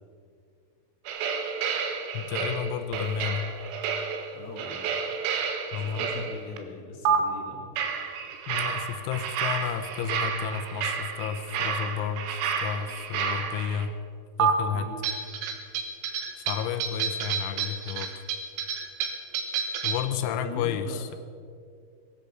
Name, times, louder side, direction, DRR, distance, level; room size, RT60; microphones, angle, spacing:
sound 1, 1.1-6.6 7.1-7.2 7.8-13.9 14.4-14.5 15.0-20.1, right 7 dB, 90° right, 4.1 m, -30 dB
voice 1, 2.1-3.5 5.7-6.1 8.5-14.0 14.4-14.9 16.4-18.1 19.8-21.2, left 8 dB, 85° left, 7 dB, 3.6 m, -32 dB
voice 2, 4.3-4.9 5.8-7.7 14.7-15.0 20.2-21.1, left 3 dB, 55° left, 0 dB, 2.9 m, -40 dB
19.5 x 10.5 x 6.7 m, 2.3 s
omnidirectional pair, 5.9 m